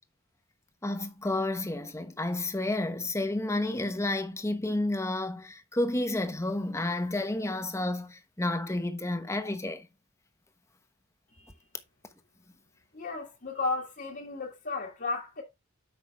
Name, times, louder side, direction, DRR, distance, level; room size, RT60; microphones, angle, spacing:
voice 1, 0.8-9.9, left 2 dB, 15° left, 1.0 m, -31 dB
voice 2, 12.9-15.4, left 3 dB, 50° left, 1.6 m, -34 dB
8.5 x 5.9 x 3.4 m
head